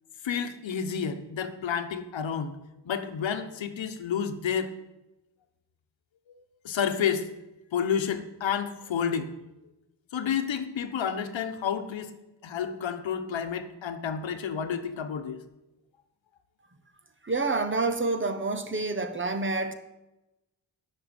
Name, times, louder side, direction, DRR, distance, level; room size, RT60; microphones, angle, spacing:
voice 1, 0.2-2.6 2.8-4.7 6.3-7.3 7.7-9.3 10.1-12.1 12.4-15.4, left 7 dB, 90° left, 8 dB, 1.2 m, -30 dB
voice 2, 17.2-19.7, right 3 dB, 25° right, 9 dB, 0.9 m, -28 dB
11.5 x 6.6 x 9.0 m, 0.98 s
wide cardioid pair, 165°, 44 cm